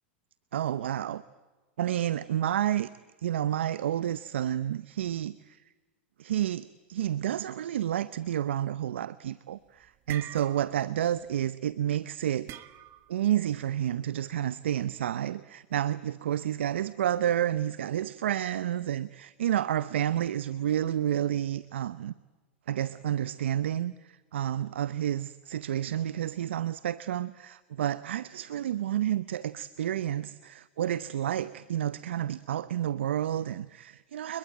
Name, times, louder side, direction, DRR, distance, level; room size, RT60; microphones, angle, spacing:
voice 1, 0.5-1.2 1.8-2.9 3.2-5.6 6.2-12.5 13.1-22.1 22.7-34.4, right 11 dB, 80° right, 0.8 m, -30 dB
sound 1, 9.5-11.5 12.5-13.2, right 13 dB, 40° right, 1.6 m, -43 dB
29.5 x 22.0 x 9.0 m
hypercardioid pair, 110°, 6 cm